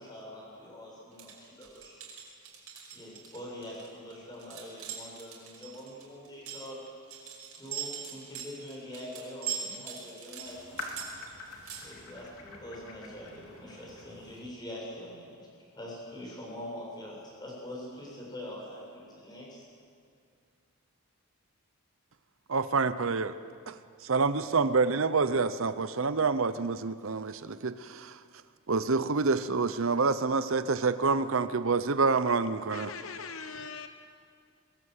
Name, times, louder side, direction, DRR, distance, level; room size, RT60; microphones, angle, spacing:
voice 1, 0.0-2.0 2.9-6.8 7.6-10.9 11.8-15.5 15.7-19.6, left 1 dB, 20° left, -4 dB, 7.6 m, -44 dB
sound 1, 1.1-11.8, right 8 dB, 85° right, 5.4 m, -41 dB
sound 2, 10.5-14.5, left 2 dB, 90° left, 3.6 m, -45 dB
voice 2, 22.5-23.3 23.7-28.2 28.7-32.9, right 4 dB, 60° right, 13 dB, 0.7 m, -27 dB
voice 3, 32.7-33.9, left 5 dB, 65° left, 8 dB, 1.0 m, -41 dB
23.0 x 22.0 x 8.1 m, 2.3 s
head